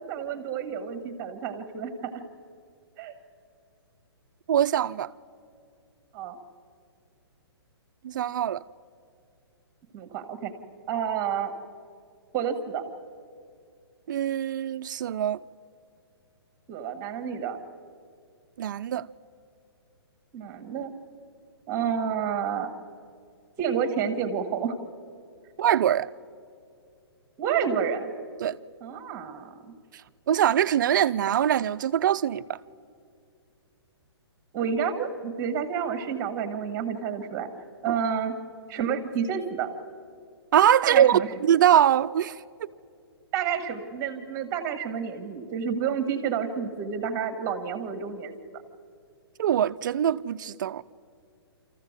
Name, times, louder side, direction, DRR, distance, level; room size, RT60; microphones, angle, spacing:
voice 1, 0.1-2.1 3.0-3.1 6.1-6.4 9.9-10.5 10.9-11.5 12.3-12.8 16.7-17.6 20.3-20.9 21.7-22.7 23.6-24.7 27.4-28.1 28.8-29.5 34.5-37.5 37.8-38.3 38.7-39.7 40.8-41.3 43.3-48.3, right 7 dB, 20° right, 1.7 m, -29 dB
voice 2, 4.5-5.1 8.0-8.6 14.1-15.4 18.6-19.1 25.6-26.1 28.4-28.6 30.3-32.6 37.9-38.0 40.5-42.7 49.4-50.8, right 10 dB, 50° right, 0.5 m, -23 dB
26.0 x 14.5 x 8.2 m
hypercardioid pair, 160°, 14 cm